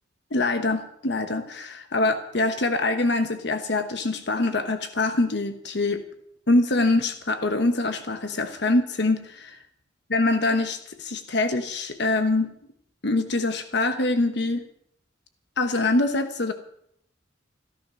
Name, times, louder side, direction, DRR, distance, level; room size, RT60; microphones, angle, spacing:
voice 1, 0.3-6.0 6.5-9.6 10.1-12.5 13.0-14.6 15.6-16.5, left 2 dB, 60° left, 8 dB, 1.1 m, -24 dB
14.5 x 13.0 x 6.3 m, 0.70 s
head